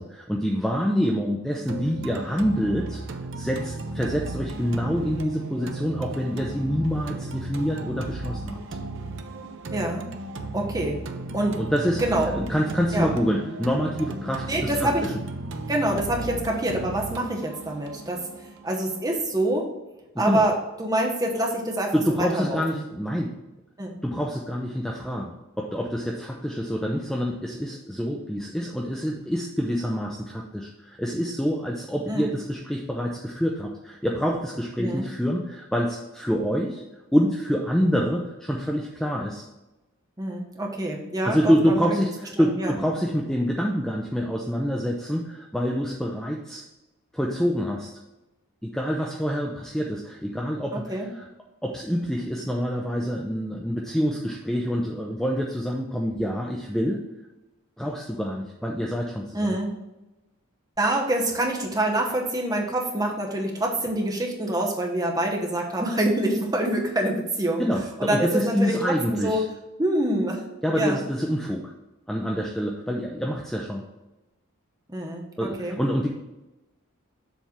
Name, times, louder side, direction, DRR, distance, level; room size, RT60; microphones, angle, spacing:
voice 1, 0.0-3.0 3.4-8.6 11.6-12.0 12.3-15.1 20.1-20.4 21.9-23.3 24.0-36.8 37.1-39.5 41.2-46.6 47.1-47.9 48.6-51.3 51.6-57.1 57.8-59.6 67.6-69.4 70.6-71.7 72.1-73.8 75.4-76.1, equal, ahead, -1 dB, 0.4 m, -26 dB
sound 1, 1.7-19.7, right 3 dB, 55° right, 0.6 m, -35 dB
voice 2, 9.7-10.1 10.5-11.0 11.3-11.6 12.0-12.3 12.9-13.1 14.5-15.1 15.7-18.2 18.6-19.7 20.2-22.8 23.8-23.9 32.1-32.3 34.8-35.0 40.2-41.9 42.4-42.7 50.7-51.1 59.3-59.8 60.8-67.6 68.0-69.4 69.8-70.4 70.7-71.0 74.9-75.8, right 1 dB, 15° right, 0 dB, 1.0 m, -26 dB
7.2 x 3.4 x 5.8 m, 1.0 s
head